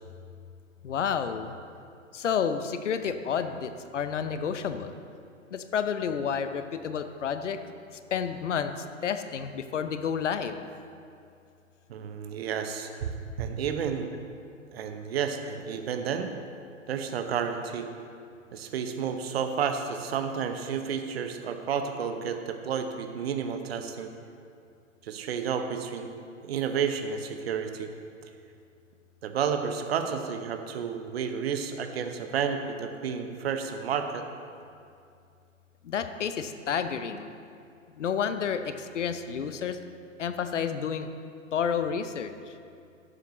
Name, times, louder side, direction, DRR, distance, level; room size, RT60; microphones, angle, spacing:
voice 1, 0.8-1.6 2.1-4.9 5.5-7.6 8.1-10.6 35.8-37.3 38.0-39.8 40.2-41.1 41.5-42.3, left 7 dB, 65° left, 9 dB, 0.7 m, -30 dB
voice 2, 11.9-14.1 14.7-16.3 16.9-17.9 18.5-24.1 25.0-26.1 26.4-27.9 29.2-34.3, right 7 dB, 50° right, 7 dB, 0.9 m, -31 dB
12.0 x 8.8 x 3.0 m, 2.4 s
figure-of-eight pair, 115°, 39 cm